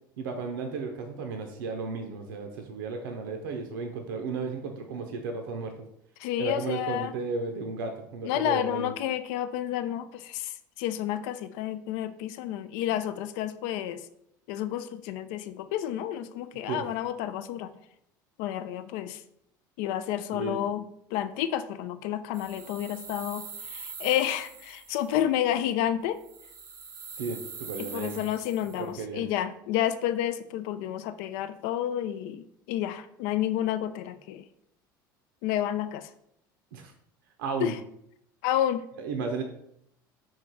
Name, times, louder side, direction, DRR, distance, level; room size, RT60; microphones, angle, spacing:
voice 1, 0.2-5.8 6.4-8.9 16.7-16.8 20.3-20.6 27.2-28.2 28.8-29.2 36.7-36.9 37.4-37.7 39.0-39.4, right 4 dB, 80° right, 4 dB, 0.5 m, -34 dB
voice 2, 6.2-7.1 8.2-14.0 14.5-17.8 18.4-19.2 19.8-20.8 21.1-26.2 27.8-34.4 35.4-36.1 37.6-37.8 38.4-38.8, left 11 dB, 65° left, 12 dB, 0.4 m, -30 dB
sound 1, 22.3-25.2 26.2-28.9, right 5 dB, 30° right, 0.7 m, -43 dB
3.8 x 3.1 x 3.8 m, 0.75 s
hypercardioid pair, 75°, 11 cm